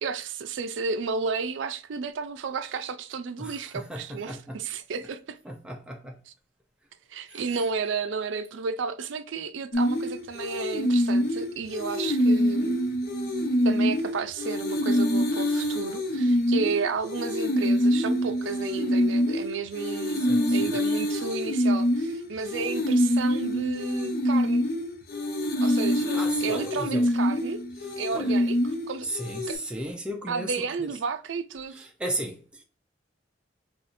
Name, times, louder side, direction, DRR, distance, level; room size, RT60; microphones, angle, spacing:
voice 1, 0.0-5.4 7.1-12.8 13.6-24.7 25.6-27.6 28.0-29.1 29.5-29.6 30.3-31.9, right 5 dB, 80° right, 0.4 m, -32 dB
voice 2, 3.4-4.6 5.5-6.2 7.3-7.4 20.2-20.7 26.1-27.0 27.8-28.4 29.0-30.5 30.8-30.9 31.7-32.6, right 1 dB, 5° right, 0.4 m, -35 dB
sound 1, 9.7-29.6, equal, 55° left, 0.7 m, -25 dB
4.1 x 2.4 x 2.5 m
head